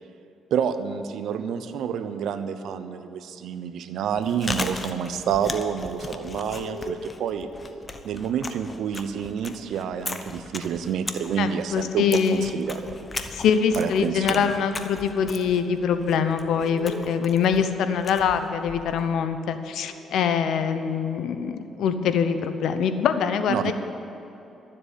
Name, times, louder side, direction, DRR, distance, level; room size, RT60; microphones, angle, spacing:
voice 1, 0.5-7.5 8.0-12.1 12.3-12.9 13.8-14.5 23.5-23.7, right 7 dB, 75° right, 11 dB, 0.7 m, -28 dB
Chewing mastication, 4.0-19.1, left 3 dB, 30° left, 0.9 m, -37 dB
sound 1, 5.8-8.6 10.6-18.3 19.7-20.1, left 4 dB, 45° right, 3.6 m, -44 dB
voice 2, 11.4-12.6 13.3-23.7, left 7 dB, 80° left, 9 dB, 0.8 m, -24 dB
12.5 x 7.6 x 8.4 m, 2.9 s
cardioid pair, 90°, 0 cm